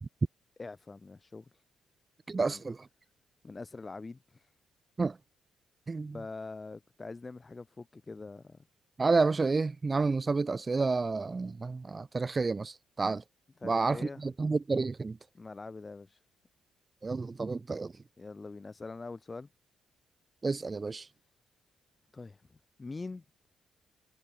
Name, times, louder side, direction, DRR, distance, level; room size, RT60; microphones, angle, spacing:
voice 1, 0.6-1.6 2.4-2.6 3.4-4.5 6.1-8.6 13.6-14.2 15.3-16.2 18.2-19.5 22.1-23.2, left 3 dB, 25° left, 7.6 m, -44 dB
voice 2, 2.3-2.9 5.0-5.2 5.9-6.2 9.0-13.2 13.6-15.2 17.0-17.9 20.4-21.1, right 4 dB, 30° right, 1.9 m, -30 dB
cardioid pair, 90°, 0 cm